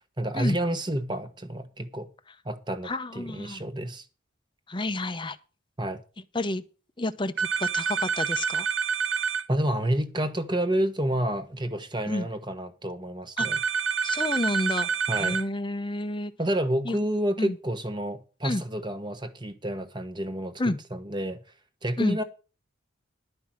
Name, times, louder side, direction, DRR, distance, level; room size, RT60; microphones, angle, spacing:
voice 1, 0.2-2.1 2.4-4.1 5.8-6.0 9.5-13.6 15.1-15.4 16.4-21.4 21.8-22.2, right 1 dB, 20° right, 1.2 m, -29 dB
voice 2, 2.8-3.6 4.7-5.4 6.3-6.6 7.0-8.7 12.1-12.3 13.4-13.5 14.0-14.9 15.2-16.3 16.9-17.0 17.4-17.6 18.4-18.6 20.6-20.8 22.0-22.2, left 2 dB, 25° left, 0.8 m, -29 dB
sound 1, 7.4-9.4 13.4-15.4, right 6 dB, 60° right, 1.0 m, -27 dB
11.5 x 5.6 x 7.5 m
head